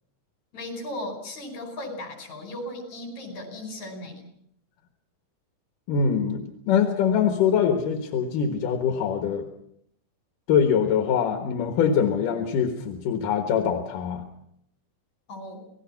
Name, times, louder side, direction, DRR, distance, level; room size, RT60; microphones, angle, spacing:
voice 1, 0.5-4.2 15.3-15.6, left 1 dB, 60° left, 4 dB, 6.3 m, -36 dB
voice 2, 5.9-9.5 10.5-14.2, left 7 dB, 80° left, 5 dB, 3.0 m, -23 dB
27.0 x 19.0 x 5.8 m, 0.73 s
omnidirectional pair, 3.7 m